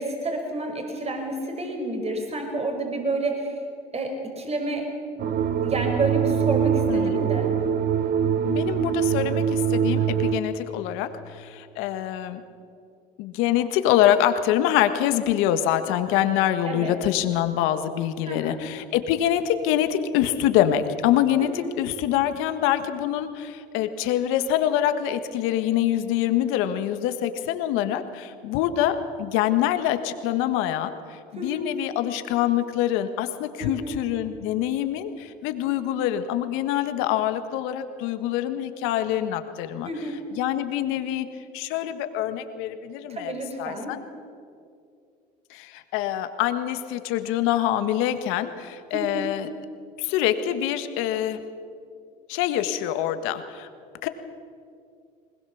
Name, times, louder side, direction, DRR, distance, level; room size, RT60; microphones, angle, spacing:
voice 1, 0.0-3.6 3.9-4.9 5.2-5.3 5.6-7.5 16.6-17.0 18.3-18.6 21.4-21.7 31.4-31.6 33.6-34.0 39.8-40.2 43.1-43.9 48.9-49.3, right 2 dB, 30° right, 3 dB, 5.1 m, -30 dB
sound 1, 5.2-10.4, right 8 dB, 50° right, 1.2 m, -23 dB
voice 2, 6.9-7.2 8.4-12.4 13.2-39.9 40.3-41.3 41.5-43.3 43.6-44.0 45.5-49.5 50.0-51.4 52.3-53.7 54.0-54.1, left 11 dB, 75° left, 10 dB, 1.6 m, -25 dB
20.5 x 20.0 x 7.2 m, 2.4 s
supercardioid pair, 80°, 21 cm